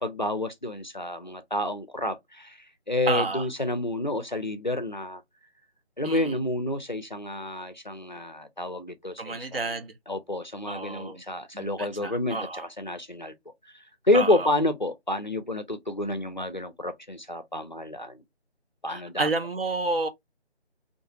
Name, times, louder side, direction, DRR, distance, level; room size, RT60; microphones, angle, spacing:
voice 1, 0.0-2.6 2.9-5.2 6.0-9.8 10.1-13.3 13.7-18.2 18.8-19.3, left 1 dB, 45° left, 0.4 m, -29 dB
voice 2, 3.1-3.5 6.0-6.3 9.2-9.9 10.7-11.2 11.5-12.6 14.1-14.5 18.9-20.1, right 3 dB, 60° right, 0.7 m, -30 dB
2.5 x 2.3 x 2.7 m
figure-of-eight pair, 160°, 34 cm